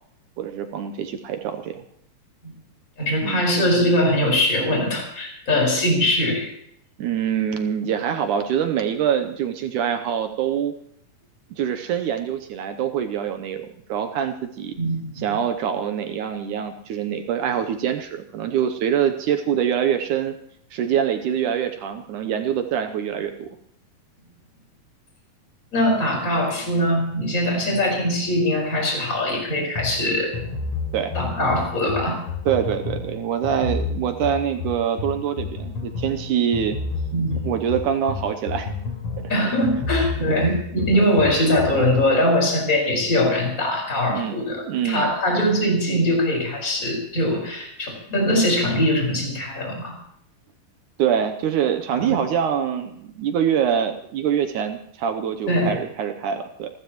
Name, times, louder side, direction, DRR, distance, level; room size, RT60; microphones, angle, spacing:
voice 1, 0.4-1.8 3.2-3.4 7.0-10.7 11.6-14.7 15.2-20.3 20.7-23.5 30.9-31.1 32.5-36.8 37.4-38.7 40.3-40.5 40.9-41.3 44.1-44.3 44.7-45.1 51.0-56.7, right 8 dB, 75° right, 7 dB, 2.0 m, -24 dB
voice 2, 3.0-6.5 14.8-15.3 25.7-30.3 31.1-32.2 37.1-37.5 39.3-49.9 55.5-55.7, left 1 dB, 20° left, 0 dB, 5.3 m, -22 dB
sound 1, 29.8-42.2, left 4 dB, 45° left, 3.9 m, -31 dB
28.5 x 12.5 x 3.1 m, 0.72 s
omnidirectional pair, 4.1 m